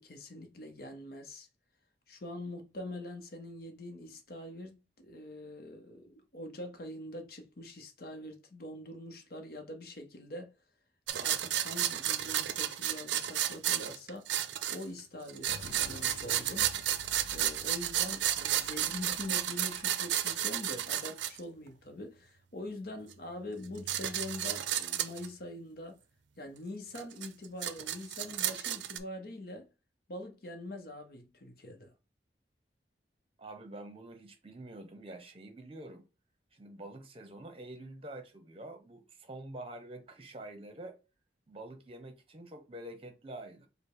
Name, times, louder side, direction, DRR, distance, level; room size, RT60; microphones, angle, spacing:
voice 1, 0.0-1.5 2.1-10.5 11.1-14.3 14.7-16.8 17.3-26.0 26.4-29.7 30.1-31.9, left 1 dB, 55° left, 0.8 m, -44 dB
sound 1, 11.1-15.0 15.3-21.4 23.1-23.2 23.7-25.3 27.0-29.0, right 11 dB, 80° right, 0.5 m, -32 dB
sound 2, 15.5-21.0, left 4 dB, 80° left, 0.4 m, -51 dB
voice 2, 33.4-36.0 36.5-41.0 41.5-43.7, right 1 dB, 30° right, 0.8 m, -47 dB
5.1 x 2.1 x 4.7 m
head